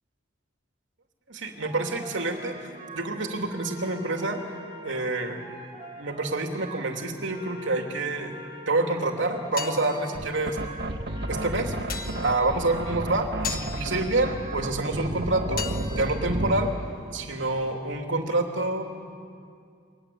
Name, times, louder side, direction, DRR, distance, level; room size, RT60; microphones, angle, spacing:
voice 1, 1.3-4.4 4.8-5.4 6.0-8.4 8.7-10.6 11.3-11.7 12.2-16.7 17.1-18.8, right 2 dB, 80° right, 3 dB, 3.0 m, -27 dB
sound 1, 1.6-16.7, right 1 dB, 30° right, 2.8 m, -44 dB
sound 2, 9.2-17.8, left 7 dB, 50° left, 1.5 m, -41 dB
sound 3, 10.1-16.8, right 1 dB, 60° right, 1.6 m, -32 dB
29.0 x 23.0 x 8.7 m, 2.3 s
head